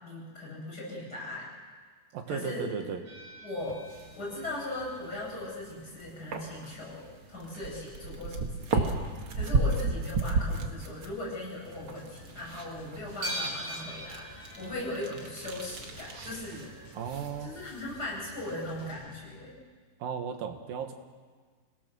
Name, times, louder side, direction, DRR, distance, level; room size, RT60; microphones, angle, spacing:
voice 1, 0.0-1.5 2.3-2.7 3.4-3.8 4.1-16.7 17.4-19.5, left 1 dB, 20° left, -5 dB, 8.4 m, -39 dB
voice 2, 2.1-3.0 16.9-17.5 20.0-20.9, right 7 dB, 65° right, 6 dB, 2.8 m, -35 dB
sound 1, 3.0-5.6 6.0-6.1 6.7-6.8 7.0-7.1 7.5-9.6 10.0-10.3 10.6-10.7 11.3-11.5 11.9-12.0 13.2-16.2 17.4-17.5 17.8-17.9, equal, 80° right, 8.0 m, -43 dB
sound 2, 3.6-18.9, right 3 dB, 50° right, 1.7 m, -35 dB
sound 3, 11.6-19.5, left 1 dB, 45° left, 4.2 m, -53 dB
27.5 x 17.5 x 6.8 m, 1.6 s
omnidirectional pair, 4.8 m